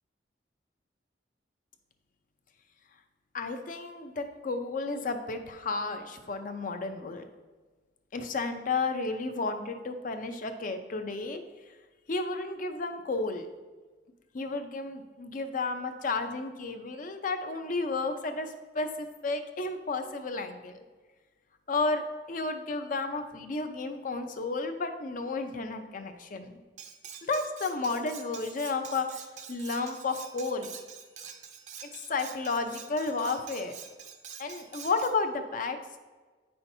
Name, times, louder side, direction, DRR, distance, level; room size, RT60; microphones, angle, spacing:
voice 1, 3.3-7.2 8.1-11.4 12.1-13.5 14.3-20.9 21.7-26.6 27.2-29.2 29.5-30.8 32.1-33.7 34.4-35.8, left 3 dB, 50° left, 7 dB, 0.6 m, -32 dB
Cutlery silverware, 26.8-35.2, right 7 dB, 40° right, 0.5 m, -46 dB
8.7 x 5.7 x 2.7 m, 1.3 s
head